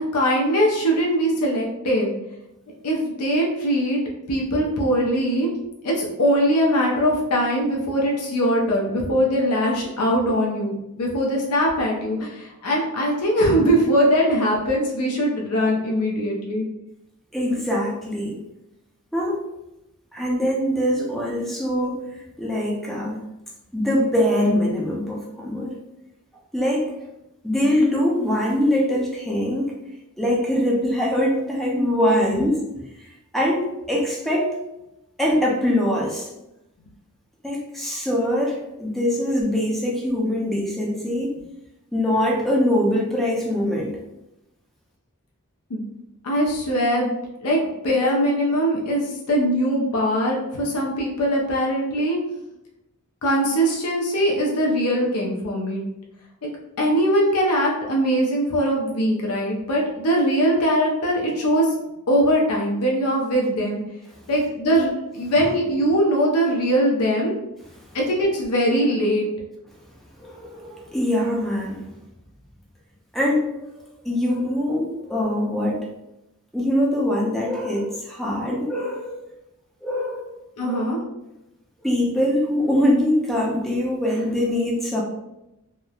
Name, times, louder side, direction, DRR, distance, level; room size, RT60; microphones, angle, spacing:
voice 1, 0.0-2.1 2.8-4.0 4.3-5.5 5.8-16.6 45.7-45.8 46.2-52.2 53.2-55.8 56.4-56.5 56.8-61.8 62.1-63.8 64.3-67.3 67.9-69.3 80.6-81.0, equal, 80° left, -2 dB, 0.5 m, -21 dB
voice 2, 17.3-18.4 19.1-19.4 20.1-22.0 22.4-23.2 23.7-25.7 26.5-26.9 27.4-29.7 30.2-32.6 33.3-34.5 35.2-36.3 37.4-41.4 41.9-43.9 70.2-71.9 73.1-73.5 74.0-75.9 76.5-79.2 79.8-80.3 80.6-81.0 81.8-85.0, left 1 dB, ahead, -3 dB, 0.4 m, -23 dB
3.0 x 2.0 x 2.3 m, 0.91 s
head